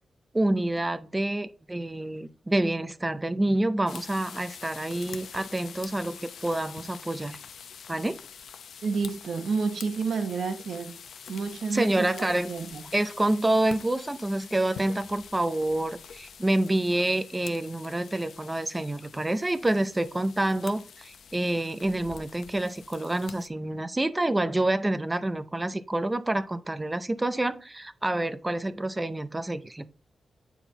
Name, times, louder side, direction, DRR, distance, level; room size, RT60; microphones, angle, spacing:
voice 1, 0.3-7.4 7.9-8.2 11.7-12.5 12.9-29.9, right 1 dB, 15° right, 11 dB, 0.5 m, -27 dB
sound 1, 3.9-23.5, left 7 dB, 90° left, 0.7 m, -46 dB
voice 2, 8.8-10.9 11.3-12.8, right 4 dB, 75° right, 6 dB, 1.2 m, -30 dB
9.1 x 4.4 x 3.9 m, 0.38 s
wide cardioid pair, 150°, 0 cm